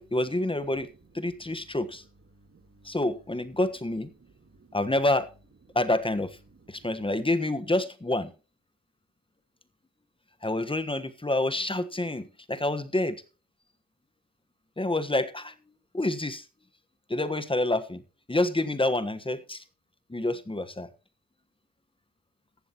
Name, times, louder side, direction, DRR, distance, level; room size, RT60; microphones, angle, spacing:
voice 1, 0.0-0.9 1.1-2.0 2.8-4.1 4.7-5.3 5.7-6.4 6.7-8.3 10.4-13.2 14.8-15.5 15.9-16.4 17.1-18.0 18.3-19.6 20.1-20.9, left 2 dB, 15° left, 11 dB, 1.4 m, -28 dB
voice 2, 0.9-1.8 2.3-3.0 4.2-4.8 5.7-5.8 6.5-7.1, right 3 dB, 40° right, 8 dB, 2.0 m, -59 dB
14.5 x 12.5 x 3.0 m, 0.33 s
wide cardioid pair, 105°, 35 cm